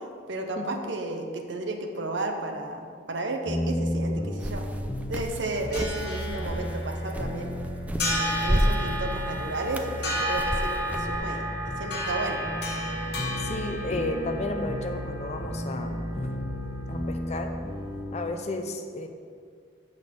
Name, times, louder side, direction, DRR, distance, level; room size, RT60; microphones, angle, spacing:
voice 1, 0.3-4.6 5.1-7.5 8.0-12.4, right 2 dB, 75° right, 4 dB, 0.9 m, -33 dB
sound 1, 3.5-18.3, left 1 dB, 20° left, 1.0 m, -34 dB
sound 2, 4.4-11.2, equal, 10° right, 0.3 m, -32 dB
sound 3, 5.4-18.0, equal, 55° left, 1.5 m, -34 dB
voice 2, 13.4-16.1 16.9-17.5 18.1-19.1, left 2 dB, 35° left, 6 dB, 0.6 m, -32 dB
6.3 x 5.4 x 7.0 m, 2.1 s
head